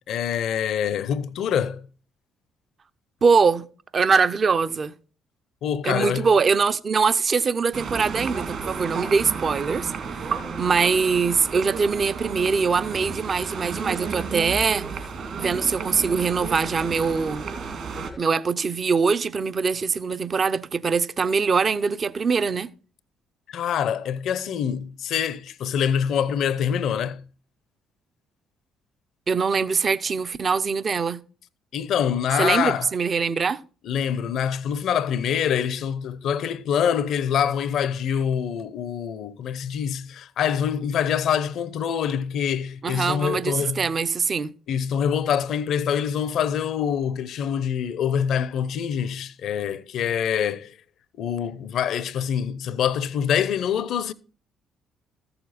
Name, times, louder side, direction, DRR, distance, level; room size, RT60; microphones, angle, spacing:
voice 1, 0.1-1.9 5.6-6.3 23.5-27.2 31.7-32.9 33.8-43.9 44.7-50.8 51.2-54.1, left 8 dB, 60° left, 0.7 m, -25 dB
voice 2, 3.2-3.7 3.9-4.9 5.8-15.1 15.4-17.5 18.2-22.7 29.3-31.2 32.4-33.6 42.8-44.5, right 5 dB, 45° right, 0.7 m, -23 dB
sound 1, 7.7-18.1, right 5 dB, 60° right, 2.5 m, -32 dB
14.5 x 6.9 x 4.2 m
hypercardioid pair, 50°, 0 cm